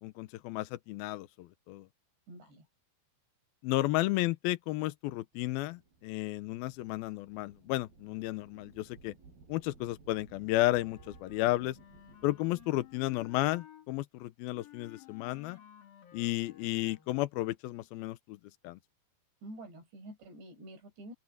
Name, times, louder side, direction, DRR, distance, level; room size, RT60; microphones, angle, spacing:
voice 1, 0.0-1.9 3.6-9.1 9.5-11.8 12.2-15.6 16.1-18.4 18.6-18.8, left 17 dB, 75° left, 2.4 m, -33 dB
voice 2, 2.3-2.7 19.4-21.1, right 1 dB, 75° right, 9.8 m, -48 dB
sound 1, 5.3-13.4, right 4 dB, 60° right, 6.9 m, -58 dB
Wind instrument woodwind instrument, 10.6-13.9 14.5-17.3, left 11 dB, 60° left, 4.4 m, -55 dB
open air
omnidirectional pair, 5.0 m